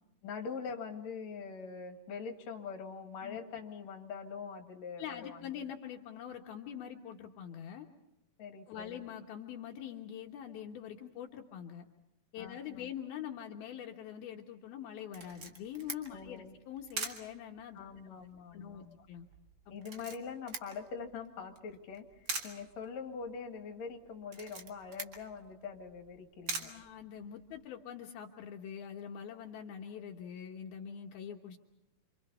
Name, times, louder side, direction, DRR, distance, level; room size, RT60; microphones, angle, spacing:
voice 1, 0.2-5.7 8.4-9.1 12.4-12.9 16.1-16.6 17.7-19.1 19.7-26.7, left 5 dB, 50° left, 3 dB, 3.0 m, -44 dB
voice 2, 5.0-7.9 8.7-11.9 12.3-17.8 18.5-19.3 26.6-31.6, left 9 dB, 75° left, 1 dB, 3.1 m, -44 dB
Camera, 15.1-27.6, right 4 dB, 40° right, 1.4 m, -45 dB
28.0 x 25.5 x 5.6 m, 0.90 s
omnidirectional pair, 4.5 m